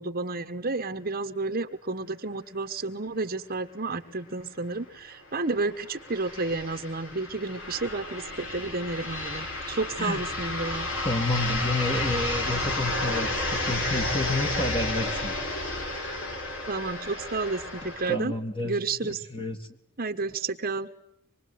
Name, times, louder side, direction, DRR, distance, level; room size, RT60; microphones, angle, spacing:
voice 1, 0.0-10.9 16.7-18.3 18.6-19.3 20.0-20.9, right 3 dB, 45° right, 6 dB, 1.3 m, -31 dB
sound 1, 4.1-4.2 4.5-4.6 5.3-18.1, left 2 dB, 65° left, 6.2 m, -32 dB
voice 2, 11.0-15.3 18.1-19.6, left 1 dB, 25° left, 4 dB, 2.3 m, -30 dB
25.5 x 22.5 x 9.6 m, 0.75 s
head